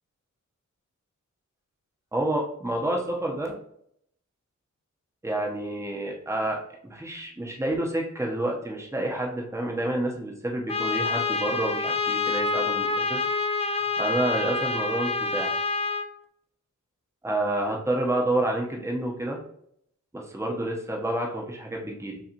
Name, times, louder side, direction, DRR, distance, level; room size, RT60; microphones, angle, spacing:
voice 1, 2.1-3.5 5.2-6.6 6.8-13.2 14.0-15.6 17.2-19.4 20.1-22.2, right 1 dB, 10° right, -1 dB, 0.9 m, -29 dB
Trumpet, 10.7-16.1, left 4 dB, 20° left, 0.4 m, -27 dB
5.7 x 3.2 x 2.9 m, 0.69 s
wide cardioid pair, 105°, 31 cm